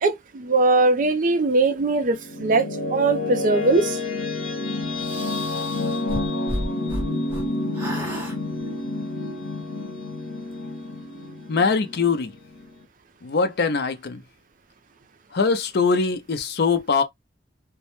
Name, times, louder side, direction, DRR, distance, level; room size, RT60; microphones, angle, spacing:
voice 1, 0.0-2.7 2.9-4.0, right 3 dB, 45° right, 0.4 m, -20 dB
sound 1, 1.8-12.8, left 2 dB, 85° left, 0.8 m, -29 dB
sound 2, 5.0-7.5 7.7-8.4, equal, 10° right, 0.8 m, -32 dB
voice 2, 11.5-12.3 13.2-14.2 15.3-17.0, left 4 dB, 60° left, 0.5 m, -22 dB
2.1 x 2.0 x 2.9 m
head